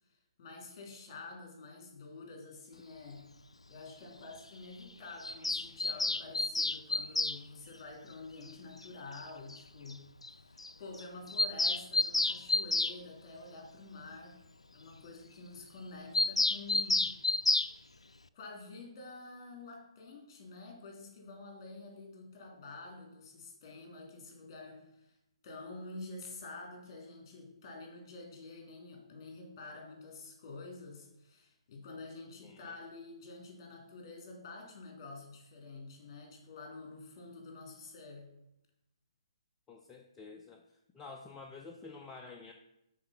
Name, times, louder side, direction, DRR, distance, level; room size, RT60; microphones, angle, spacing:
voice 1, 0.4-3.3 3.7-10.0 10.4-14.3 14.7-17.1 18.3-25.2 25.4-38.3, left 3 dB, 35° left, 0 dB, 2.8 m, -48 dB
Bird vocalization bird call bird song, 5.2-7.4 8.8-8.9 9.2-9.3 9.5-9.6 9.9-10.0 10.2-10.3 10.6-10.7 11.0-13.0 16.1-17.7, left 2 dB, 80° left, 0.4 m, -30 dB
voice 2, 32.4-32.8 39.7-40.6 40.9-42.5, left 4 dB, 15° left, 1 dB, 0.5 m, -49 dB
8.7 x 4.3 x 5.7 m, 0.86 s
figure-of-eight pair, 130°, 3 cm